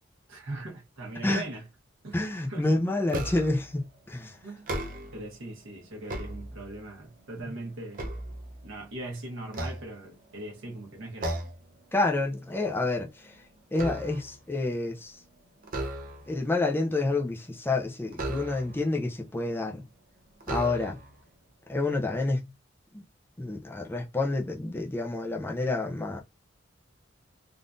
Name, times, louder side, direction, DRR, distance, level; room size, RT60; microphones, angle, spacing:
voice 1, 0.3-1.7 2.0-2.2 2.5-2.7 4.4-4.7 5.1-8.1 8.6-11.4, right 2 dB, 75° right, 1.1 m, -40 dB
voice 2, 2.1-4.4 11.9-13.3 13.7-15.2 16.3-19.8 20.5-21.0 21.7-22.5 22.9-23.0 23.4-26.2, left 2 dB, 10° left, 0.4 m, -28 dB
sound 1, 3.1-3.7 4.5-5.3 5.8-6.9 7.4-8.9 9.5-10.5 11.2-11.7 12.1-12.3 12.7-14.4 15.6-16.5 18.1-18.9 19.7-19.8 20.4-21.2, right 1 dB, 40° right, 0.6 m, -36 dB
3.6 x 2.5 x 2.5 m
head